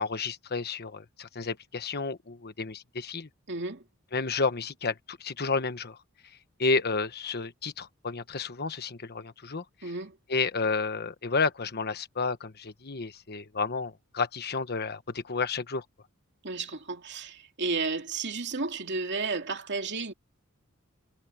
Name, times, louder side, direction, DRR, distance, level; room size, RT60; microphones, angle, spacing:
voice 1, 0.0-3.3 4.1-6.0 6.6-9.9 10.3-15.8, left 4 dB, 50° left, 1.2 m, -31 dB
voice 2, 3.5-3.8 9.8-10.2 16.4-20.1, right 4 dB, 55° right, 2.8 m, -32 dB
head